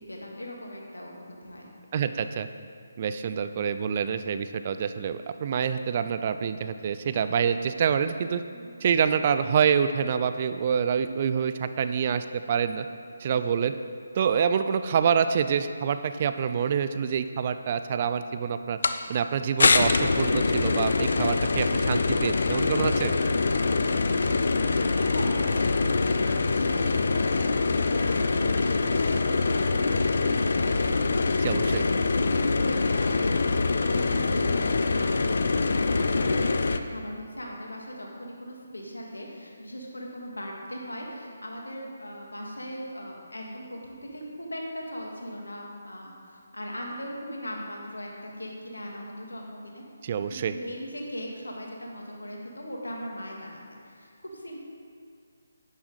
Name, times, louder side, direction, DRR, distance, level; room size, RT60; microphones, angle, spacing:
voice 1, 0.1-1.7 8.5-8.7 13.4-13.6 24.5-25.4 26.4-27.2 27.6-30.9 31.9-33.2 33.6-49.8 50.3-54.7, equal, 85° left, -1 dB, 2.2 m, -39 dB
voice 2, 1.9-2.5 3.0-8.4 8.8-12.9 13.2-13.7 14.1-18.8 19.1-23.1 31.4-31.8 50.0-50.5, right 7 dB, 40° right, 10 dB, 0.5 m, -26 dB
sound 1, 18.8-19.0 19.6-36.8, left 3 dB, 60° left, 0.6 m, -24 dB
10.5 x 9.3 x 4.1 m, 2.2 s
figure-of-eight pair, 150°, 0 cm